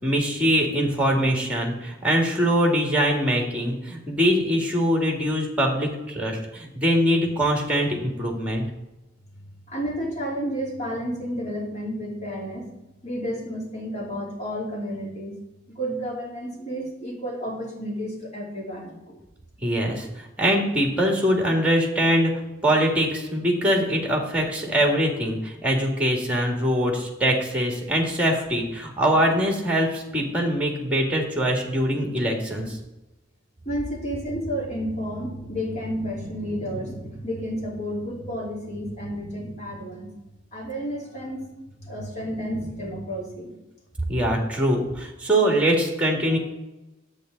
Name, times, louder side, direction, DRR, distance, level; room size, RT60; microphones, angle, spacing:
voice 1, 0.0-8.7 19.6-22.3 22.6-32.8 44.1-46.4, equal, 5° right, 1 dB, 2.0 m, -23 dB
voice 2, 9.7-12.7 13.0-15.4 15.7-19.2 33.6-40.1 40.5-41.5 41.8-43.5 46.3-46.4, equal, 35° left, -3 dB, 2.8 m, -31 dB
10.5 x 8.2 x 3.9 m, 0.98 s
head